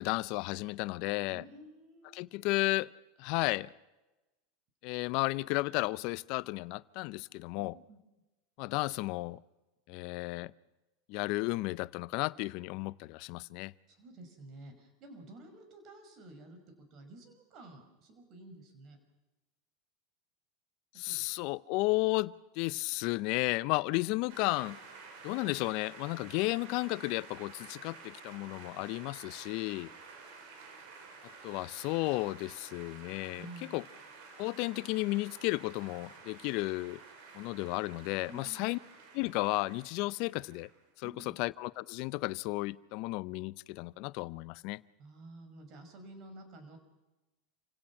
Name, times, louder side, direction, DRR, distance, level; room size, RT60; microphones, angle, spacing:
voice 1, 0.0-1.4 2.1-2.9 3.2-3.7 4.8-7.7 8.6-9.4 9.9-10.5 11.1-13.7 21.0-24.8 25.2-29.9 31.4-33.8 34.4-37.0 37.3-38.8 39.1-40.7 41.0-44.8, left 22 dB, 60° left, 0.6 m, -33 dB
voice 2, 1.3-2.4 7.6-8.0 13.9-19.0 20.9-21.2 33.4-33.8 38.3-38.8 41.0-41.3 45.0-46.8, right 2 dB, 50° right, 5.5 m, -51 dB
sound 1, 24.3-40.9, right 4 dB, 65° right, 5.3 m, -52 dB
27.5 x 17.0 x 6.0 m
hypercardioid pair, 100°, 0 cm